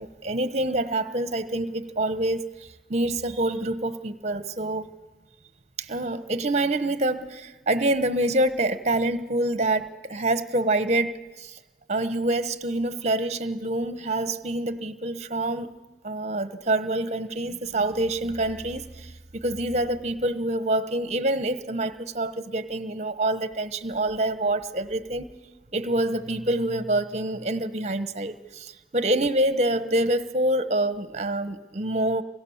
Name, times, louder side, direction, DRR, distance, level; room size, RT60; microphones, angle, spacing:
voice 1, 0.0-4.9 5.8-11.6 11.9-15.7 16.0-25.3 25.7-32.2, right 1 dB, 40° right, 1.1 m, -26 dB
28.5 x 24.0 x 7.3 m
head